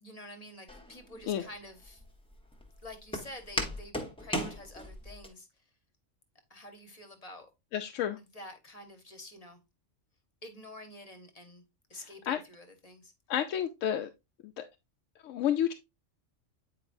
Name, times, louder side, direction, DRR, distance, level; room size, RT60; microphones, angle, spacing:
voice 1, 0.0-2.0 2.8-5.7 6.5-7.5 8.2-9.6 10.4-11.6 11.9-13.1, left 1 dB, 30° left, 1.1 m, -48 dB
Walk footsteps, 0.7-5.3, equal, 5° left, 1.0 m, -38 dB
voice 2, 7.7-8.2 12.3-12.4 13.3-14.1 14.6-14.7 15.2-15.7, left 10 dB, 90° left, 0.9 m, -30 dB
8.7 x 4.7 x 2.6 m
omnidirectional pair, 1.3 m